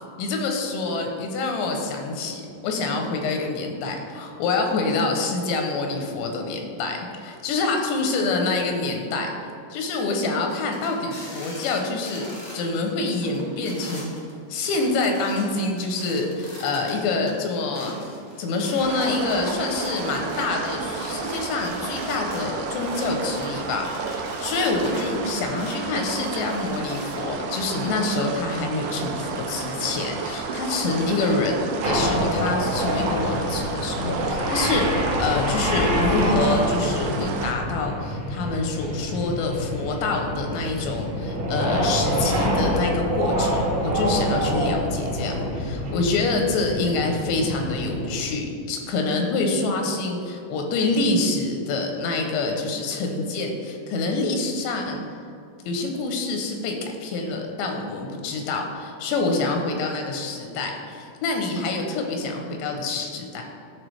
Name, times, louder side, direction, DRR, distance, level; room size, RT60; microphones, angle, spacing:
voice 1, 0.2-9.3 9.7-12.3 12.5-14.1 14.5-55.0 55.7-63.4, left 3 dB, 85° left, 2 dB, 3.0 m, -26 dB
sound 1, 10.5-12.7 13.0-17.3 17.7-25.8 26.1-27.1, left 1 dB, 50° left, 1.2 m, -42 dB
sound 2, 18.8-37.5, right 4 dB, 85° right, 3.0 m, -32 dB
sound 3, 31.8-48.1, equal, 60° right, 2.2 m, -26 dB
12.5 x 4.6 x 3.3 m, 2.4 s
omnidirectional pair, 5.1 m